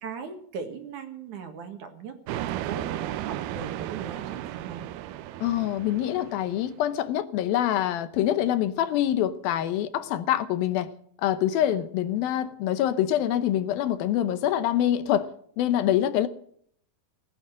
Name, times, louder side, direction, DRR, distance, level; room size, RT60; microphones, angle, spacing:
voice 1, 0.0-4.8, right 6 dB, 60° right, 2.8 m, -39 dB
sound 1, 2.3-6.8, right 13 dB, 80° right, 2.6 m, -34 dB
voice 2, 5.4-10.9 11.2-15.3 15.6-16.3, left 11 dB, 75° left, 2.5 m, -25 dB
19.0 x 9.7 x 7.5 m
omnidirectional pair, 4.5 m